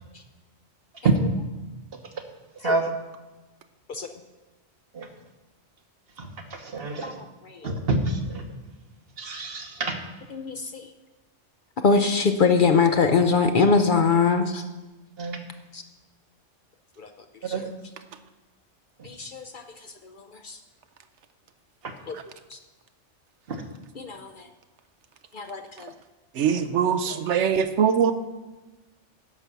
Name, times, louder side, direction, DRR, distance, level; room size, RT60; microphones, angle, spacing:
voice 1, 6.2-7.1 7.6-8.4 9.2-10.0 15.2-15.4 17.5-17.6 21.8-21.9 23.5-23.6, right 3 dB, 55° right, 5 dB, 1.3 m, -26 dB
voice 2, 7.0-7.6 10.3-10.9 11.8-14.6 15.7-15.8 17.0-17.1 17.5-17.7 19.0-19.6 20.0-20.2 20.4-20.6 22.1-22.2 22.5-22.6 24.0-24.5 25.3-25.9, left 5 dB, 50° left, 7 dB, 0.7 m, -23 dB
voice 3, 26.3-28.1, right 7 dB, 75° right, 10 dB, 0.9 m, -22 dB
11.0 x 6.0 x 6.8 m, 1.1 s
omnidirectional pair, 1.2 m